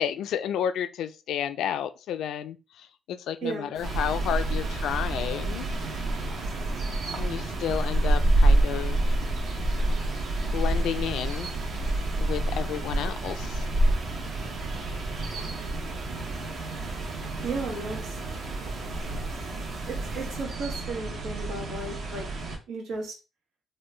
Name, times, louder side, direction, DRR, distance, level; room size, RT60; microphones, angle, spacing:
voice 1, 0.0-5.7 7.2-9.0 10.4-11.5 11.9-13.7, left 9 dB, 80° left, 0.3 m, -31 dB
voice 2, 3.4-3.7 17.4-18.2 19.9-22.3 22.7-23.1, right 3 dB, 90° right, 1.2 m, -34 dB
sound 1, 3.7-20.5, right 3 dB, 35° right, 0.3 m, -45 dB
sound 2, 3.8-22.6, right 1 dB, 60° right, 0.9 m, -28 dB
3.1 x 2.2 x 3.2 m
cardioid pair, 90°, 0 cm